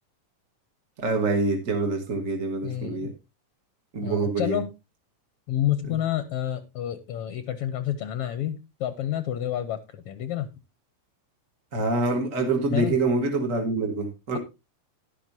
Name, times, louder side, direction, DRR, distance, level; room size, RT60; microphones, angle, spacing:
voice 1, 1.0-3.1 3.9-4.6 11.7-14.4, right 3 dB, 35° right, 3 dB, 1.4 m, -25 dB
voice 2, 2.6-3.1 4.0-4.7 5.5-10.5 12.7-12.9 14.3-14.4, left 11 dB, 70° left, 12 dB, 1.5 m, -29 dB
12.0 x 11.0 x 2.7 m, 0.24 s
omnidirectional pair, 3.4 m